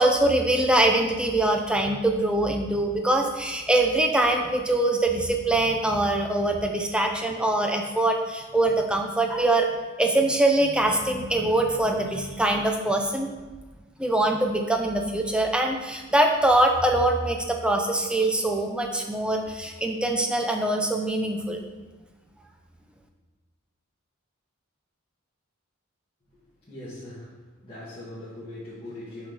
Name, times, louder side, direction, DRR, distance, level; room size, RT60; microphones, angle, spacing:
voice 1, 0.0-9.7 10.0-13.3 14.0-21.6, right 1 dB, 5° right, 3 dB, 0.5 m, -23 dB
voice 2, 26.7-27.3 27.6-29.3, left 1 dB, 25° left, -12 dB, 1.8 m, -40 dB
6.2 x 3.8 x 6.1 m, 1.2 s
head